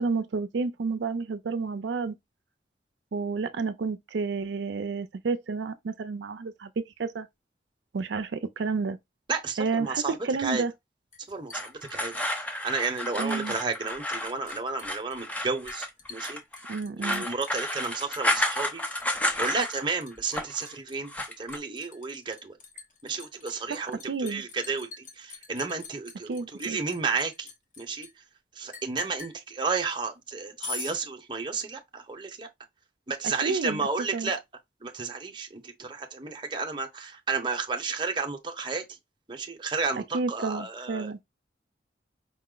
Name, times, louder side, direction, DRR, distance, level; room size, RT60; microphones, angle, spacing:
voice 1, 0.0-2.1 3.1-7.3 7.9-9.0 9.6-10.7 13.2-13.5 16.7-17.2 23.7-24.4 26.3-26.8 33.4-33.9 34.1-34.3 40.1-41.2, right 4 dB, 85° right, 0.5 m, -30 dB
voice 2, 9.3-10.6 11.3-12.1 12.6-16.4 16.9-18.8 19.4-21.1 21.4-22.5 23.0-27.5 27.8-28.1 28.5-32.5 33.1-34.4 34.8-38.8 39.3-41.2, right 4 dB, 25° right, 0.8 m, -32 dB
Liquid, 11.1-13.0 13.3-13.9 14.2-28.1 28.7-29.3 30.6-31.0, left 4 dB, 45° left, 1.1 m, -44 dB
sound 1, 11.5-19.9 20.2-20.7 21.0-21.6, left 1 dB, 10° left, 0.6 m, -31 dB
5.0 x 2.0 x 3.8 m
head